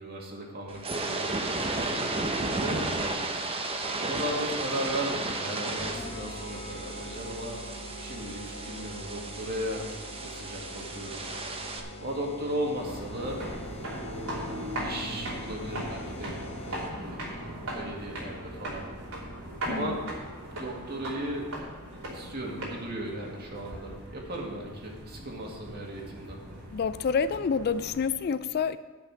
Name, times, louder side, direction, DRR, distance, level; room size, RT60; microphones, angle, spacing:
voice 1, 0.0-1.5 2.5-2.9 4.0-7.6 8.0-9.9 10.2-11.2 12.0-13.5 14.8-18.9 19.6-20.0 20.5-21.5 22.1-26.4, right 1 dB, 45° right, 2.0 m, -36 dB
sound 1, 0.7-11.8, right 2 dB, 25° right, 0.9 m, -33 dB
sound 2, 5.8-17.2, equal, 30° left, 0.7 m, -43 dB
sound 3, 12.8-28.0, right 1 dB, 85° right, 3.1 m, -39 dB
voice 2, 26.7-28.8, left 6 dB, 45° left, 0.3 m, -28 dB
10.5 x 5.8 x 7.5 m
head